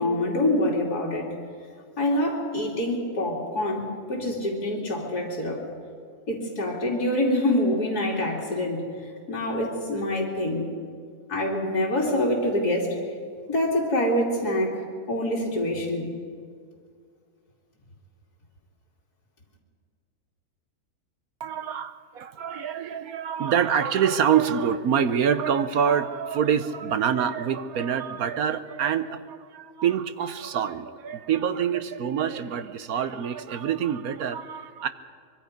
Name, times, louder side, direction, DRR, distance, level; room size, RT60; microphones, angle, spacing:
voice 1, 0.0-1.3 2.0-5.6 6.3-8.8 9.3-10.7 11.3-13.0 13.5-14.8 15.1-16.1, left 1 dB, 75° left, -4 dB, 3.3 m, -25 dB
voice 2, 21.4-34.9, right 8 dB, 70° right, 12 dB, 1.2 m, -26 dB
24.5 x 23.5 x 5.2 m, 2.1 s
omnidirectional pair, 1.7 m